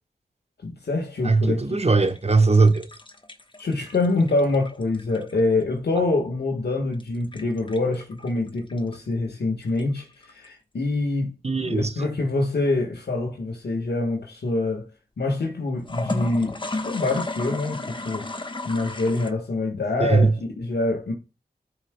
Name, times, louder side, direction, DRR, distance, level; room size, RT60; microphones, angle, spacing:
voice 1, 0.6-1.6 3.6-11.3 11.6-14.9 15.2-21.1, left 2 dB, 75° left, 1.5 m, -25 dB
voice 2, 1.2-2.9 11.4-12.1 20.0-20.3, right 3 dB, 40° right, 1.0 m, -19 dB
sound 1, 2.0-5.6 6.9-9.0 9.6-10.5 15.8-19.3, left 2 dB, 30° left, 1.2 m, -34 dB
14.5 x 4.9 x 2.2 m
cardioid pair, 45°, 17 cm